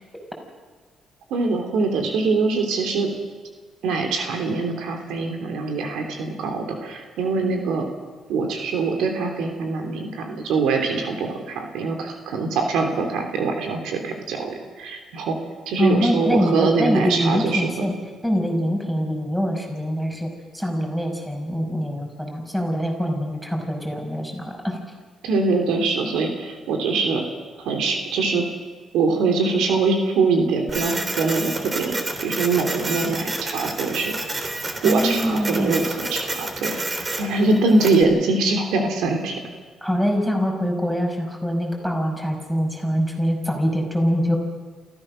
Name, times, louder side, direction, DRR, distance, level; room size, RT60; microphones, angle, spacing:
voice 1, 1.3-3.1 3.8-7.9 8.3-15.4 15.7-17.9 25.2-27.2 27.6-28.4 28.9-34.2 34.8-36.8 37.2-39.4, right 3 dB, 85° right, 4 dB, 3.1 m, -23 dB
voice 2, 15.8-17.9 18.2-24.8 34.8-35.9 39.8-44.4, equal, 5° right, 2 dB, 5.6 m, -24 dB
Printer, 30.7-38.0, right 2 dB, 30° right, 3.2 m, -29 dB
28.5 x 15.0 x 6.5 m, 1.4 s
cardioid pair, 90°, 0 cm